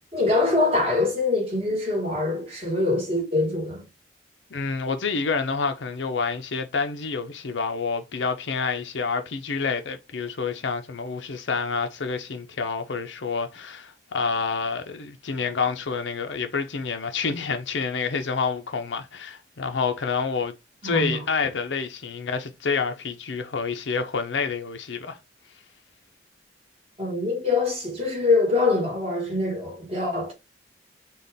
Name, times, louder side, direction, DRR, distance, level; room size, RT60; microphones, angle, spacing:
voice 1, 0.1-3.8 20.8-21.2 27.0-30.3, left 3 dB, 30° right, 1.7 m, -24 dB
voice 2, 4.5-20.5 20.8-25.2, left 5 dB, 85° left, 0.7 m, -28 dB
4.0 x 2.4 x 3.5 m
head